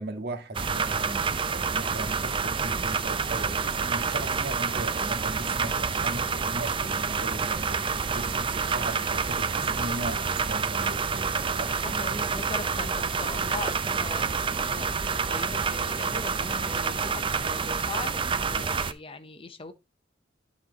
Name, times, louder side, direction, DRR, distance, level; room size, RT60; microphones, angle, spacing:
voice 1, 0.0-11.8 12.1-12.3, right 2 dB, 55° right, 1.7 m, -38 dB
sound 1, 0.5-18.9, right 5 dB, 25° right, 0.5 m, -28 dB
voice 2, 11.8-14.3 14.7-18.2 18.5-19.7, left 3 dB, 30° left, 0.7 m, -39 dB
10.0 x 4.3 x 4.0 m
head